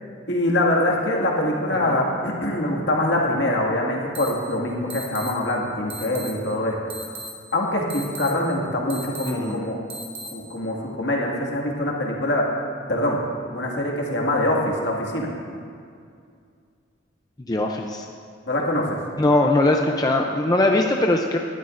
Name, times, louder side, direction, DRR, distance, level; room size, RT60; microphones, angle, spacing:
voice 1, 0.3-7.2 7.5-9.8 10.3-12.5 12.9-13.2 13.5-15.3 18.5-19.0, left 1 dB, 65° left, -2 dB, 2.0 m, -24 dB
sound 1, 4.1-4.3 4.9-5.3 5.9-6.3 6.9-7.3 7.9-8.3 8.9-9.3 9.9-10.3, right 2 dB, 25° right, 1.6 m, -35 dB
voice 2, 9.3-9.6 17.5-18.1 19.2-21.4, left 2 dB, 20° left, 2 dB, 0.5 m, -21 dB
18.5 x 12.0 x 2.6 m, 2.3 s
head